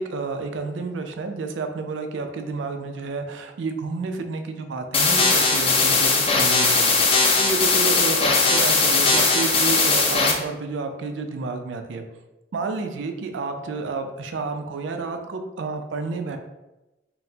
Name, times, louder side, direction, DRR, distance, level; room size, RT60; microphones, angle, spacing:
voice 1, 0.0-12.1 12.5-16.4, right 4 dB, 80° right, 6 dB, 0.4 m, -30 dB
sound 1, 4.9-10.3, left 3 dB, 30° left, 0.4 m, -19 dB
4.1 x 2.0 x 2.7 m, 1.0 s
head